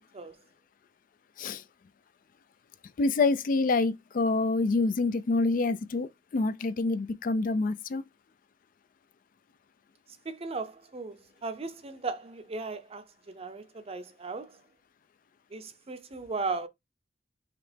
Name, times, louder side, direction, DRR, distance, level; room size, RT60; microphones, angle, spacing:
voice 1, 3.0-8.0, left 3 dB, 50° left, 0.4 m, -27 dB
voice 2, 10.3-14.5 15.5-16.7, right 4 dB, 35° right, 0.6 m, -37 dB
4.9 x 2.9 x 3.3 m
head